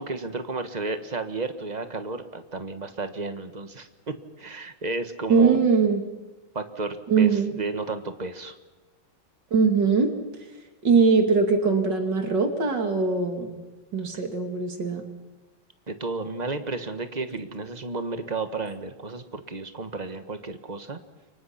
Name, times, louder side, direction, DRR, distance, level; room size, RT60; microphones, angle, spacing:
voice 1, 0.0-5.6 6.5-8.5 15.9-21.0, right 3 dB, 25° right, 8 dB, 1.4 m, -32 dB
voice 2, 5.3-6.0 7.1-7.5 9.5-10.1 10.8-13.6 13.9-15.0, right 5 dB, 60° right, 5 dB, 3.0 m, -21 dB
29.5 x 24.5 x 5.9 m, 1.1 s
omnidirectional pair, 2.2 m